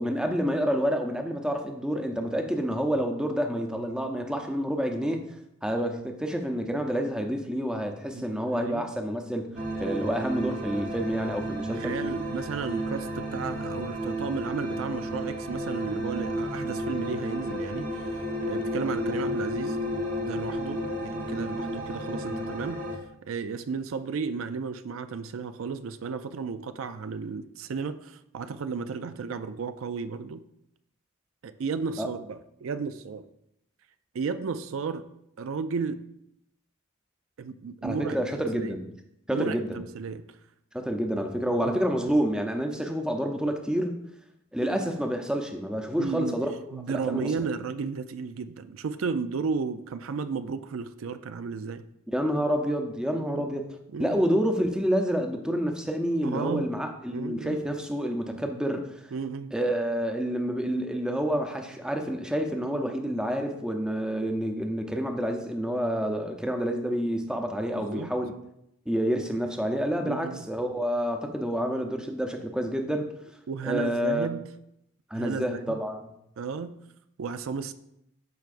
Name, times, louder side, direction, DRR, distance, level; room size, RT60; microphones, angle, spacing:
voice 1, 0.0-5.2 5.6-9.5 9.8-11.9 32.0-32.1 37.8-38.9 39.3-39.8 40.7-44.0 44.5-46.5 46.9-47.3 52.1-53.6 54.0-59.0 59.5-68.3 68.9-73.1 73.6-74.3 75.1-76.1, equal, 5° right, 0.6 m, -28 dB
voice 2, 8.1-8.9 11.7-18.0 18.5-22.8 23.2-30.4 31.4-33.3 34.1-35.0 35.4-36.0 37.4-38.2 38.5-38.7 39.3-40.4 41.6-41.7 46.0-46.4 46.7-51.8 53.1-53.5 53.9-54.2 56.2-56.7 57.1-57.6 59.1-59.5 67.7-68.1 70.1-70.4 73.5-74.5 75.1-75.8 76.4-76.8 77.2-77.7, right 5 dB, 90° right, 0.4 m, -33 dB
sound 1, 9.6-23.0, equal, 40° right, 0.9 m, -32 dB
12.0 x 4.5 x 2.5 m
head